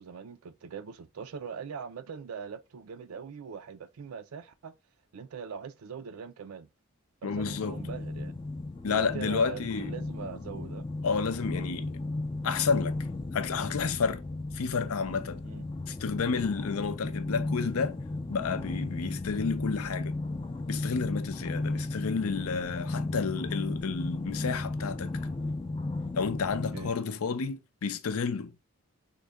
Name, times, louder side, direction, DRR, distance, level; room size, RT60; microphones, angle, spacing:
voice 1, 0.0-4.7 5.1-6.7 7.2-8.4 8.9-10.8 15.4-15.6 26.7-26.9, right 6 dB, 85° right, 0.4 m, -41 dB
voice 2, 7.2-7.8 8.8-9.9 11.0-12.0 12.4-13.0 13.3-14.2 14.5-15.4 15.9-18.0 18.3-20.2 20.7-25.2 26.2-28.5, left 5 dB, 90° left, 0.5 m, -31 dB
sound 1, 7.3-26.9, left 2 dB, 20° left, 0.3 m, -35 dB
3.8 x 2.2 x 3.3 m
head